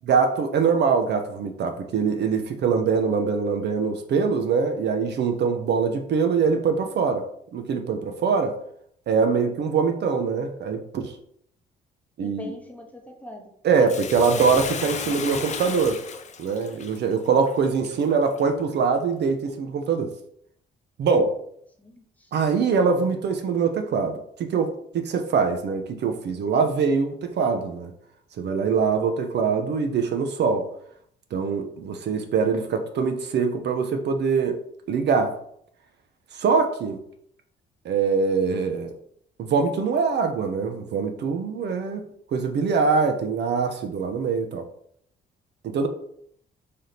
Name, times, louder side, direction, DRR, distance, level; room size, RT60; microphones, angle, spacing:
voice 1, 0.0-7.2 7.5-8.6 9.1-11.1 12.2-12.5 13.6-16.0 16.4-20.1 21.0-21.3 22.3-27.9 28.4-30.7 31.3-34.6 34.9-35.3 36.3-37.0 37.8-38.9 39.4-42.0 42.3-44.7 45.6-45.9, right 5 dB, 60° right, 6 dB, 0.5 m, -23 dB
voice 2, 5.7-6.0 12.2-13.5 13.8-13.9 21.8-22.3, left 1 dB, 5° left, 2 dB, 0.8 m, -43 dB
Bathtub (filling or washing), 13.9-18.4 18.9-19.0, left 6 dB, 35° left, 0.4 m, -34 dB
3.3 x 2.7 x 4.0 m, 0.67 s
cardioid pair, 90°, 20 cm